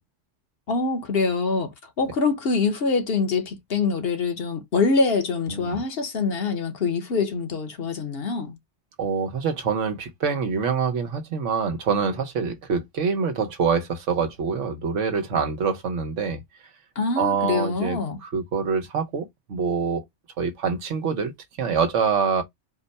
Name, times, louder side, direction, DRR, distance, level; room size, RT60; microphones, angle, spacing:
voice 1, 0.7-1.7 2.0-8.5 17.0-18.2, left 4 dB, 55° left, 1.2 m, -24 dB
voice 2, 5.5-5.8 9.0-16.4 17.2-20.0 20.4-21.3 21.6-22.4, right 5 dB, 85° right, 1.2 m, -25 dB
4.4 x 2.2 x 3.9 m
omnidirectional pair, 1.2 m